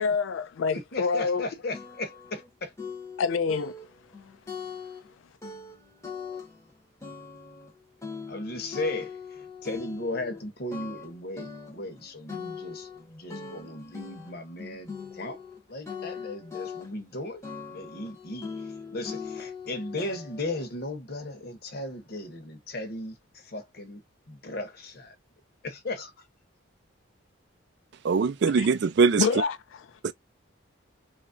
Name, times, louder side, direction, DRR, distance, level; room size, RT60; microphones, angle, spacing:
voice 1, 0.0-1.4 3.2-3.7 28.6-28.7 29.2-29.6, left 5 dB, 75° left, 0.3 m, -26 dB
voice 2, 0.7-2.7 8.3-15.4 15.7-17.4 17.7-18.5 18.9-24.0 24.3-25.1 25.6-26.1, left 2 dB, 50° left, 0.8 m, -36 dB
sound 1, 1.1-1.2 1.7-2.5 2.8-5.1 5.4-6.7 7.0-10.4 10.7-15.6 15.9-17.2 17.4-20.7, left 5 dB, 15° left, 0.8 m, -40 dB
voice 3, 28.0-29.2 30.0-30.1, right 5 dB, 60° right, 0.3 m, -22 dB
3.1 x 2.4 x 2.5 m
head